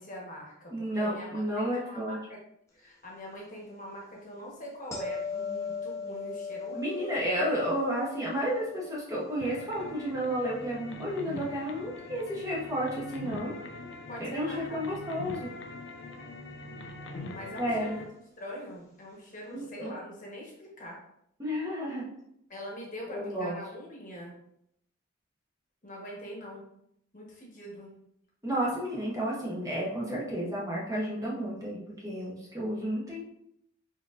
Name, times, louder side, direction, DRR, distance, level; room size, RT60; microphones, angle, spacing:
voice 1, 0.0-2.4 2.7-7.3 14.1-14.8 17.3-18.0 18.4-21.0 22.5-24.3 25.8-26.7 27.1-27.9, equal, 40° left, -3 dB, 1.1 m, -43 dB
voice 2, 0.7-2.2 6.7-13.5 14.2-15.5 17.6-17.9 19.5-20.0 21.4-22.1 23.1-23.6 28.4-33.2, equal, 15° right, -5 dB, 0.9 m, -32 dB
sound 1, 4.9-11.9 17.2-17.3, left 5 dB, 15° left, 0.8 m, -40 dB
sound 2, 9.4-18.1, left 2 dB, 60° left, 0.5 m, -43 dB
4.4 x 3.8 x 2.5 m, 0.76 s
head